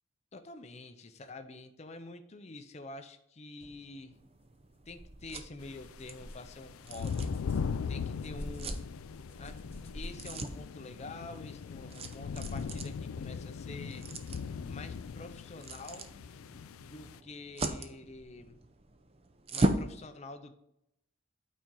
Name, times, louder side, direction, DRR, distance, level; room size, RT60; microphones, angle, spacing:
voice 1, 0.3-4.2 4.9-7.3 7.9-8.8 9.4-9.6 9.9-14.1 14.7-16.1 16.8-18.6 19.5-20.6, left 2 dB, 30° left, 7 dB, 0.5 m, -47 dB
sound 1, 3.6-19.9, right 1 dB, 30° right, 0.5 m, -40 dB
sound 2, 5.1-5.2 5.6-10.7, equal, 10° left, 0.9 m, -47 dB
sound 3, 5.6-17.2, left 6 dB, 90° left, 0.4 m, -39 dB
8.7 x 4.3 x 3.7 m, 0.80 s
head